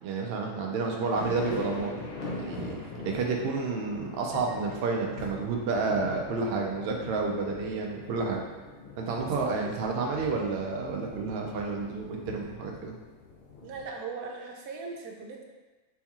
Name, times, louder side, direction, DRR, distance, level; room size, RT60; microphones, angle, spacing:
voice 1, 0.0-1.9 2.3-8.4 9.0-12.9, right 4 dB, 65° right, 0 dB, 0.6 m, -30 dB
sound 1, 1.1-13.9, left 3 dB, 75° left, 0.5 m, -42 dB
voice 2, 9.2-10.0 13.6-15.4, right 4 dB, 85° right, 1 dB, 1.1 m, -40 dB
4.4 x 2.8 x 2.3 m, 1.2 s
omnidirectional pair, 1.6 m